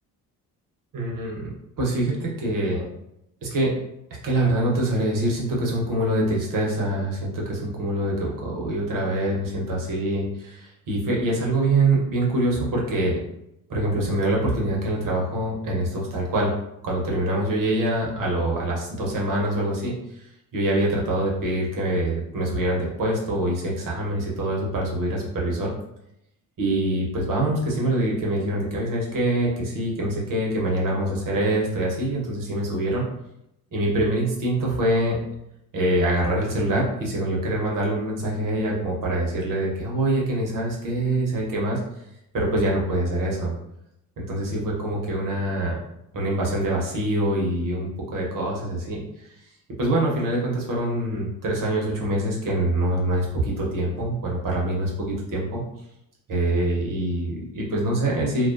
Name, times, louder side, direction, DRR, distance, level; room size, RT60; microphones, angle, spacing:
voice 1, 0.9-2.9 3.4-3.8 4.2-13.2 13.7-16.5 16.8-20.3 20.5-25.7 26.6-33.1 33.7-35.2 35.7-41.8 42.3-43.5 44.2-45.8 46.1-49.0 49.8-55.6 56.3-58.5, right 1 dB, 45° right, -3 dB, 1.0 m, -25 dB
2.3 x 2.1 x 2.5 m, 0.80 s
hypercardioid pair, 45°, 46 cm